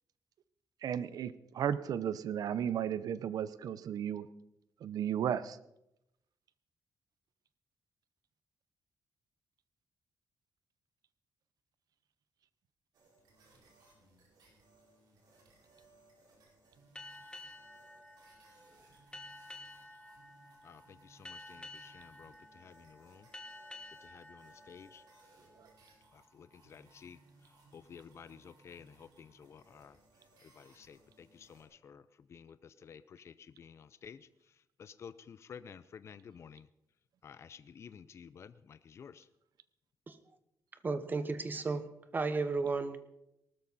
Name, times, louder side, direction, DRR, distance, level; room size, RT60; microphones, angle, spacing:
voice 1, 0.8-4.3 4.8-5.6 25.6-25.7, right 9 dB, 65° right, 15 dB, 0.7 m, -34 dB
sound 1, 12.9-31.6, right 2 dB, 85° right, 4.9 m, -65 dB
sound 2, 17.0-26.1, left 2 dB, 15° left, 1.6 m, -52 dB
voice 2, 20.6-23.3 24.0-25.0 26.1-30.0 30.4-36.7 37.2-39.3, left 7 dB, 40° left, 14 dB, 0.5 m, -53 dB
voice 3, 40.8-41.9 42.1-43.0, right 4 dB, 30° right, 11 dB, 1.0 m, -33 dB
19.0 x 13.0 x 4.1 m, 0.85 s
wide cardioid pair, 150°, 7 cm